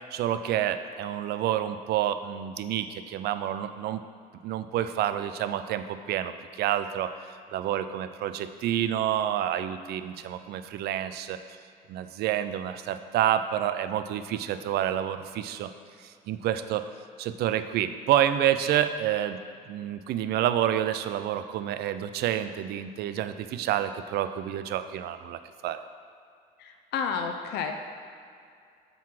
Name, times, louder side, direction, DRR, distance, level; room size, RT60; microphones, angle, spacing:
voice 1, 0.1-4.0 4.4-7.1 7.5-11.4 11.9-15.7 16.0-16.8 17.2-19.4 19.7-25.8, right 11 dB, 70° right, 11 dB, 0.4 m, -28 dB
voice 2, 26.6-27.7, left 6 dB, 75° left, 5 dB, 0.6 m, -31 dB
7.4 x 3.9 x 5.9 m, 2.3 s
cardioid pair, 110°, 17 cm